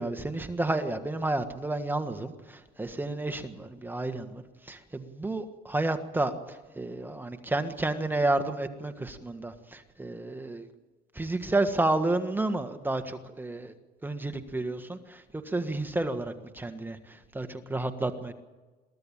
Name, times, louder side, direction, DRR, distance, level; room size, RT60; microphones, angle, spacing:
voice 1, 0.0-10.7 11.1-13.7 14.0-18.3, right 2 dB, 10° right, 7 dB, 1.6 m, -31 dB
23.0 x 15.5 x 8.9 m, 1.2 s
cardioid pair, 110°, 17 cm